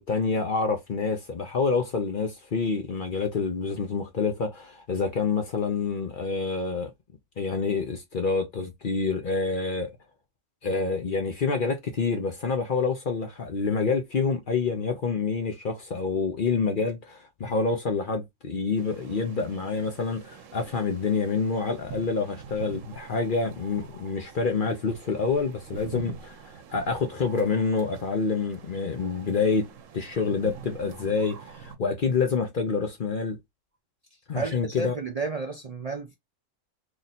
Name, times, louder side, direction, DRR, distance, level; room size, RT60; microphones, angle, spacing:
voice 1, 0.0-6.9 7.4-9.9 10.6-29.7 29.9-33.4 34.3-35.0, left 4 dB, 50° left, 0.7 m, -27 dB
sound 1, 18.8-31.8, right 7 dB, 75° right, 1.0 m, -45 dB
voice 2, 34.3-36.2, right 3 dB, 40° right, 0.5 m, -32 dB
3.1 x 2.6 x 4.1 m
omnidirectional pair, 1.4 m